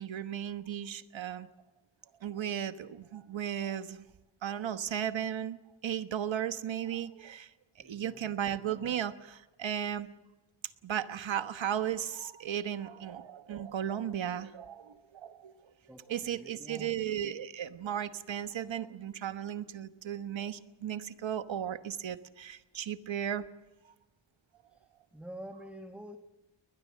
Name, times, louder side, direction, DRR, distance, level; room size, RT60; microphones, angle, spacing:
voice 1, 0.0-1.5 2.2-4.0 4.4-5.6 5.8-7.5 7.8-10.1 10.8-15.5 16.1-23.4, right 9 dB, 75° right, 11 dB, 1.3 m, -35 dB
voice 2, 7.8-8.3 15.9-16.9 24.7-26.2, right 1 dB, 5° right, 6 dB, 1.3 m, -48 dB
22.0 x 20.5 x 7.5 m, 1.1 s
wide cardioid pair, 130°, 46 cm